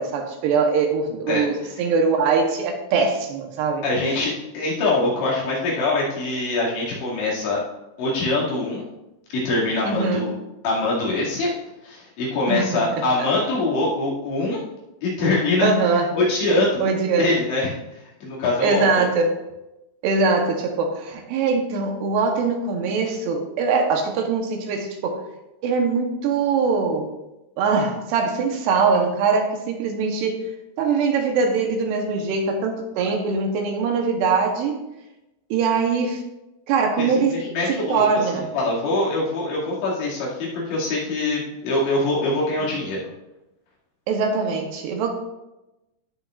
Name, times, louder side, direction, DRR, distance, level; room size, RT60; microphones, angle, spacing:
voice 1, 0.0-3.8 9.8-10.3 12.5-13.0 15.6-16.1 16.8-17.4 18.6-19.4 20.0-25.2 25.6-27.1 27.6-30.4 30.8-34.8 35.5-36.2 36.7-37.4 37.7-38.5 44.1-45.1, right 4 dB, 75° right, 3 dB, 3.0 m, -22 dB
voice 2, 3.8-7.6 8.0-8.8 9.3-10.3 10.6-11.5 11.8-14.6 15.0-16.8 17.2-17.7 18.2-18.9 37.0-43.0, left 2 dB, 80° left, -6 dB, 4.7 m, -23 dB
16.5 x 6.6 x 2.5 m, 0.96 s
omnidirectional pair, 5.1 m